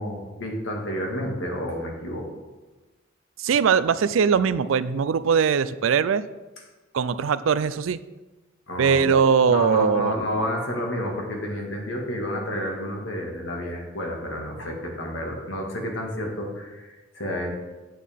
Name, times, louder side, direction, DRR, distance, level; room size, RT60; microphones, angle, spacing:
voice 1, 0.0-2.3 8.7-9.1 9.5-17.5, left 1 dB, 70° left, 0 dB, 1.9 m, -30 dB
voice 2, 3.4-6.3 6.9-8.0 8.8-10.2, right 6 dB, 85° right, 15 dB, 0.4 m, -21 dB
9.2 x 8.5 x 3.6 m, 1.2 s
head